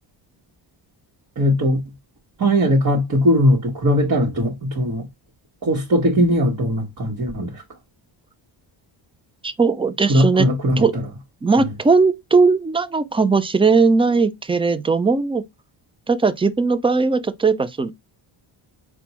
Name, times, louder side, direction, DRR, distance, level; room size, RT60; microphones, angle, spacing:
voice 1, 1.4-1.8 2.4-5.1 5.6-7.6 10.1-10.8, equal, 40° right, 1.3 m, -19 dB
voice 2, 9.4-10.5 10.8-10.9 11.4-15.4 16.1-17.9, right 4 dB, 15° right, 0.3 m, -18 dB
4.3 x 2.3 x 4.1 m
cardioid pair, 105°, 48 cm